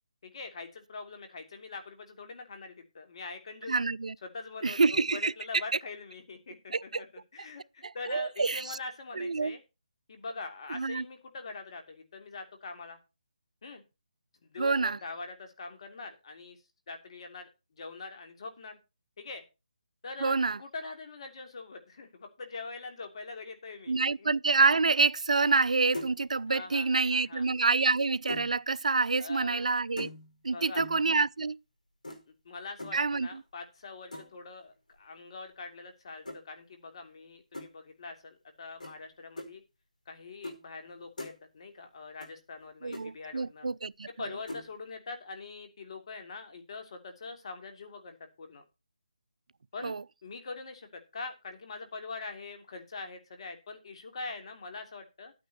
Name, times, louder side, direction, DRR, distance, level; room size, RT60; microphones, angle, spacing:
voice 1, 0.2-3.7 4.2-7.1 7.3-9.6 10.1-13.0 13.6-13.8 14.4-16.6 16.9-18.8 19.2-19.4 20.0-24.3 26.5-27.5 29.2-29.7 30.5-30.8 32.4-39.6 40.1-43.7 44.1-48.6 49.7-50.0 50.2-55.3, left 4 dB, 45° left, 3.0 m, -43 dB
voice 2, 3.7-4.1 4.6-5.3 6.7-7.0 7.8-8.8 9.1-9.6 10.7-11.0 14.6-15.0 20.2-20.6 23.9-30.1 30.4-31.6 32.9-33.4 42.8-44.3 49.8-50.0, right 4 dB, 70° right, 0.5 m, -27 dB
sound 1, 25.4-25.7 25.9-26.3 27.5-28.5 30.0-30.4 30.8-31.1 32.0-32.2 32.8-33.0 34.1-34.4 36.2-36.4 37.5-37.7 38.8-39.0 39.4-39.5 40.4-40.6 40.9-41.4 42.2-42.3 42.6-42.7 42.9-43.1 44.5-44.7, left 1 dB, 80° left, 5.0 m, -41 dB
11.5 x 9.0 x 4.2 m
figure-of-eight pair, 155°, 4 cm